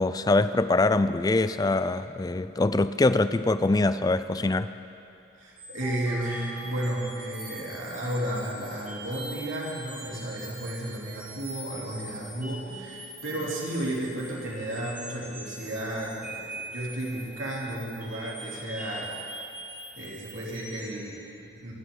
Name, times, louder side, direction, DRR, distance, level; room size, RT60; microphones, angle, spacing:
voice 1, 0.0-4.7, left 2 dB, 20° left, 13 dB, 0.4 m, -23 dB
voice 2, 5.4-19.2 20.0-21.7, right 1 dB, 90° right, -4 dB, 3.3 m, -33 dB
sound 1, 5.6-21.0, right 2 dB, 10° right, 3.1 m, -43 dB
26.5 x 11.5 x 3.9 m, 2.7 s
head